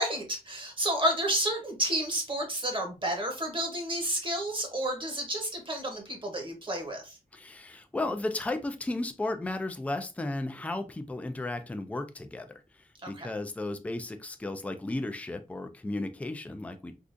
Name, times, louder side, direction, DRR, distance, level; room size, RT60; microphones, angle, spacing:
voice 1, 0.0-7.2 13.0-13.3, right 1 dB, 35° right, 0.9 m, -31 dB
voice 2, 7.3-16.9, left 2 dB, 10° left, 0.3 m, -34 dB
3.6 x 2.4 x 2.5 m
wide cardioid pair, 130°, 15 cm